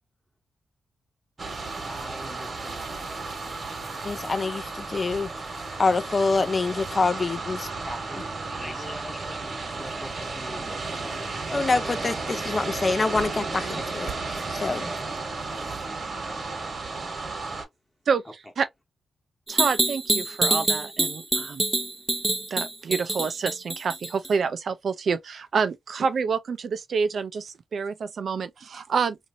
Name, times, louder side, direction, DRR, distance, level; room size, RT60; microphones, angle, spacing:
sound 1, 1.4-17.6, right 3 dB, 50° right, 1.2 m, -33 dB
voice 1, 1.8-3.1 7.8-8.3 8.5-11.1 11.4-12.2, left 1 dB, 15° left, 0.9 m, -43 dB
voice 2, 4.0-5.3 5.8-7.7 8.6-8.9 11.5-14.9, left 3 dB, 40° left, 0.5 m, -26 dB
sound 2, 19.5-24.3, right 2 dB, 25° right, 0.6 m, -25 dB
voice 3, 19.5-21.6 22.5-29.2, right 5 dB, 65° right, 0.5 m, -27 dB
2.9 x 2.6 x 2.6 m
cardioid pair, 65°, 0 cm